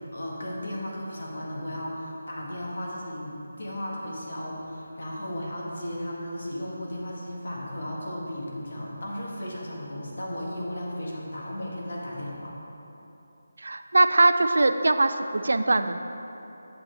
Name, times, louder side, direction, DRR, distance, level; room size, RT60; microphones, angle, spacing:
voice 1, 0.1-12.5, left 1 dB, 65° left, -3 dB, 1.6 m, -35 dB
voice 2, 13.6-16.0, right 2 dB, 75° right, 10 dB, 0.4 m, -21 dB
7.4 x 7.3 x 3.4 m, 3.0 s
figure-of-eight pair, 165°, 0 cm